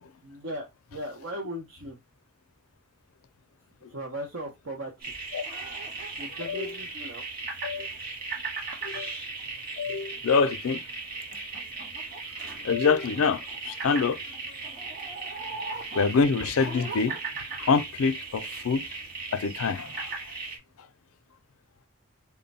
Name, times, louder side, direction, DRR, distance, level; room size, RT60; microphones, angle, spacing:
voice 1, 0.2-2.0 3.9-4.9 6.2-7.2, equal, 65° right, 0.8 m, -37 dB
sound 1, 5.0-20.6, right 3 dB, 40° right, 1.7 m, -37 dB
voice 2, 6.4-6.7 7.6-7.9 8.9-9.1 9.8-10.8 12.6-14.2 16.0-17.2 17.6-18.8 19.3-20.2, left 5 dB, 85° left, 0.4 m, -25 dB
3.6 x 2.2 x 4.0 m
head